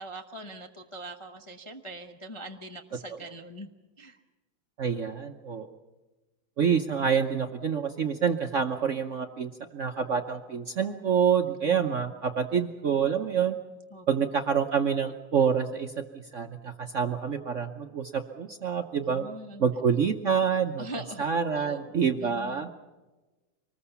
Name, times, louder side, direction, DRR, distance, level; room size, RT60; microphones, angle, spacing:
voice 1, 0.0-3.7 4.0-4.2 13.9-14.1 19.0-19.6 20.8-21.3 21.5-22.8, right 1 dB, 30° left, 4 dB, 0.5 m, -42 dB
voice 2, 4.8-5.7 6.6-13.6 14.1-19.2 19.6-20.9 21.2-22.7, right 7 dB, 55° right, 6 dB, 0.8 m, -27 dB
24.5 x 20.0 x 7.0 m, 1.2 s
omnidirectional pair, 2.2 m